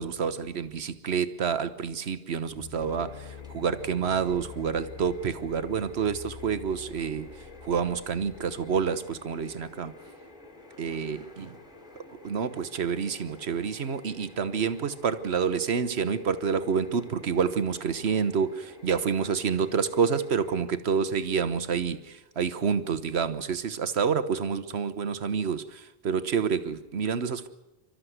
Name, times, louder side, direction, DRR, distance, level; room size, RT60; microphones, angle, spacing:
voice 1, 0.0-7.3 7.6-9.9 10.8-11.5 12.2-27.5, right 6 dB, 75° right, 12 dB, 1.3 m, -28 dB
sound 1, 2.5-9.7, left 8 dB, 70° left, 1.8 m, -47 dB
sound 2, 2.8-20.6, left 2 dB, 5° right, 2.8 m, -50 dB
28.0 x 13.0 x 8.0 m, 1.1 s
omnidirectional pair, 1.1 m